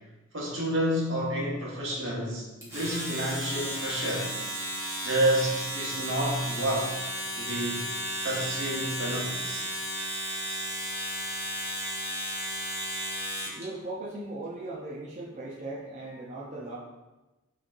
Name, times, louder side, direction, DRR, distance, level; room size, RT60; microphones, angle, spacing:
voice 1, 0.3-2.4 2.7-4.4 5.0-6.9 7.4-8.0 8.2-9.7, right 1 dB, 70° right, -4 dB, 1.3 m, -29 dB
Domestic sounds home sounds, 2.6-13.6, equal, 15° right, 1.3 m, -34 dB
voice 2, 13.6-16.8, right 2 dB, 35° right, -6 dB, 0.6 m, -38 dB
6.0 x 3.2 x 2.5 m, 1.1 s
head